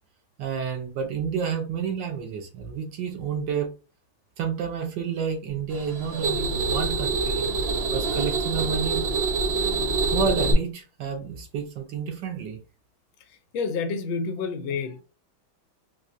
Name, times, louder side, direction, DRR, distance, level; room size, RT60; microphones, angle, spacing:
voice 1, 0.4-3.7 4.4-7.4 7.9-9.1 10.1-12.6, right 6 dB, 70° right, 1.3 m, -30 dB
sound 1, 5.7-10.5, right 4 dB, 90° right, 0.5 m, -26 dB
voice 2, 13.5-15.0, left 5 dB, 75° left, 1.3 m, -28 dB
4.2 x 2.6 x 2.5 m
omnidirectional pair, 2.3 m